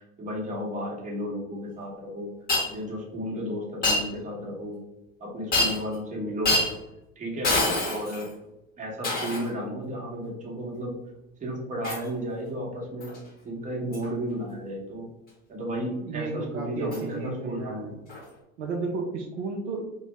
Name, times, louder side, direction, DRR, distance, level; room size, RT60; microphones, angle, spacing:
voice 1, 0.0-2.3 2.7-4.8 5.2-6.6 7.2-7.6 7.8-8.3 8.8-10.9 11.4-13.1 13.4-15.1 15.5-17.9, equal, 20° right, -2 dB, 0.9 m, -33 dB
Shatter, 2.5-2.7 3.8-4.1 5.5-5.9 6.4-6.7 7.4-8.3 9.0-9.5 11.8-12.1 13.0-13.2 13.9-14.1 16.9-17.0 18.1-18.2, left 2 dB, 20° left, 0.9 m, -25 dB
voice 2, 16.0-18.0 18.6-19.8, right 3 dB, 55° right, 1 dB, 0.6 m, -33 dB
2.5 x 2.1 x 3.1 m, 0.93 s
hypercardioid pair, 95°, 42 cm